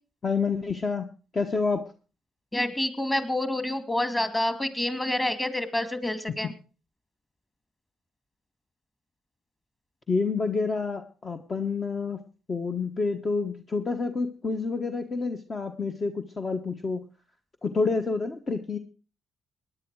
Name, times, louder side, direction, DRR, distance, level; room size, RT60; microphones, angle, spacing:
voice 1, 0.2-1.1 1.3-1.8 10.1-12.2 12.5-17.0 17.6-18.8, left 4 dB, 35° left, 6 dB, 1.2 m, -28 dB
voice 2, 2.5-6.5, left 1 dB, 15° left, 11 dB, 2.3 m, -28 dB
18.5 x 10.0 x 4.8 m, 0.36 s
supercardioid pair, 65°, 0 cm